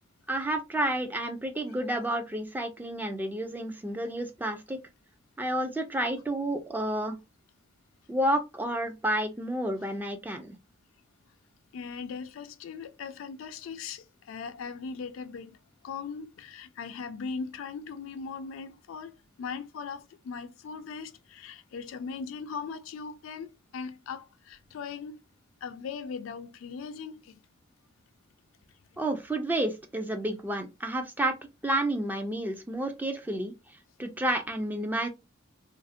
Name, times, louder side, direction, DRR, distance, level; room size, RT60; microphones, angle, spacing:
voice 1, 0.3-4.8 5.4-7.2 8.1-10.6 29.0-33.5 34.0-35.1, right 1 dB, 10° right, 0.3 m, -30 dB
voice 2, 11.7-15.6 15.8-25.2 25.6-27.4, left 5 dB, 75° left, 0.3 m, -39 dB
2.5 x 2.0 x 2.4 m
head